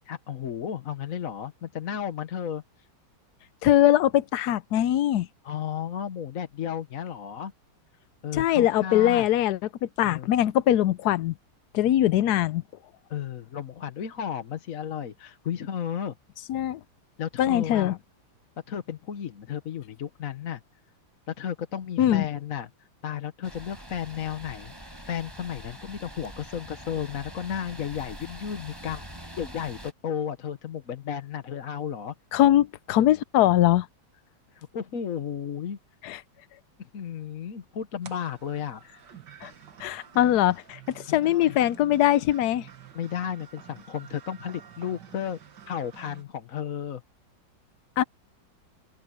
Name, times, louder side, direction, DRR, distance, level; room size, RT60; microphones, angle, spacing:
voice 1, 0.1-2.6 5.4-7.5 8.2-9.3 10.0-10.3 13.1-16.2 17.2-18.0 18.7-20.6 21.3-24.7 25.0-32.1 34.5-35.8 36.8-38.8 41.1-41.6 42.9-45.4 45.7-47.0, left 8 dB, 50° left, 1.2 m, -33 dB
voice 2, 3.6-5.3 8.3-11.3 11.7-12.6 16.5-16.8 17.4-18.0 22.0-22.3 32.3-33.9 36.0-36.2 39.4-39.5 39.8-42.7 48.0-48.1, left 12 dB, 70° left, 0.9 m, -22 dB
sound 1, 23.4-29.9, right 1 dB, 10° right, 5.1 m, -44 dB
sound 2, 38.0-46.2, right 9 dB, 60° right, 2.1 m, -49 dB
open air
omnidirectional pair, 2.3 m